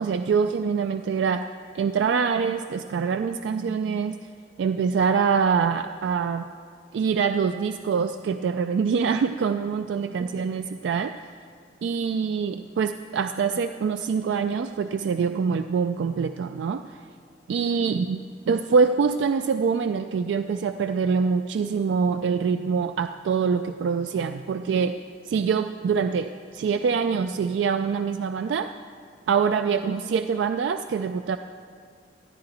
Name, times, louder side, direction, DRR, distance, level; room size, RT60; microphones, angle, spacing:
voice 1, 0.0-1.4 1.7-4.2 4.6-6.5 6.9-11.1 11.8-16.8 17.5-25.0 25.3-28.7 29.3-31.4, right 6 dB, 90° right, 8 dB, 0.3 m, -24 dB
13.0 x 10.5 x 4.2 m, 2.1 s
head